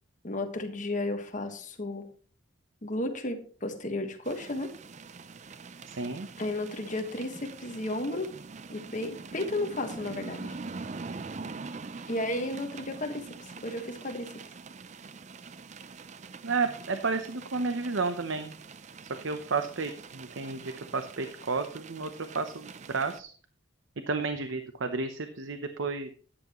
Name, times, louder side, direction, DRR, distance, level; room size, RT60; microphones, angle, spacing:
voice 1, 0.2-2.1 2.8-4.7 6.4-8.3 8.7-10.6 12.1-13.3 13.6-14.3, left 1 dB, 40° left, 6 dB, 1.4 m, -33 dB
sound 1, 4.2-23.2, right 4 dB, 35° right, 0.5 m, -44 dB
voice 2, 5.9-6.3 16.4-18.6 19.0-23.3 24.1-26.1, right 4 dB, 70° right, 8 dB, 0.8 m, -32 dB
13.5 x 9.8 x 3.0 m, 0.43 s
head